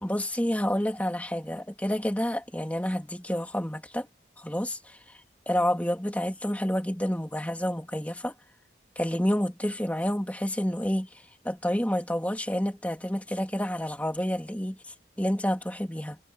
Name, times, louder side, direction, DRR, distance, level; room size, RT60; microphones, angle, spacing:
voice 1, 0.0-4.1 4.4-5.0 5.5-8.3 9.0-11.1 11.4-14.8 15.2-16.2, equal, 10° left, 3.0 m, -29 dB
head